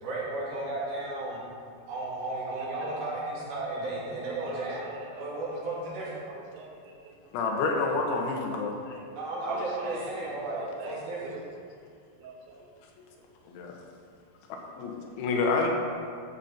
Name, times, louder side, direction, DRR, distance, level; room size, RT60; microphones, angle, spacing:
voice 1, 0.0-1.4 1.9-4.9 5.2-6.2 9.1-11.3, right 2 dB, 55° right, -7 dB, 4.5 m, -34 dB
voice 2, 2.5-3.0 3.8-7.2 8.0-8.3 8.5-8.6 9.4-11.4 12.2-12.6, right 3 dB, 80° right, 0 dB, 3.7 m, -42 dB
voice 3, 7.3-9.0 13.5-13.7 14.5-15.7, left 3 dB, 80° left, 1 dB, 3.6 m, -29 dB
13.0 x 9.0 x 4.4 m, 2.3 s
omnidirectional pair, 5.3 m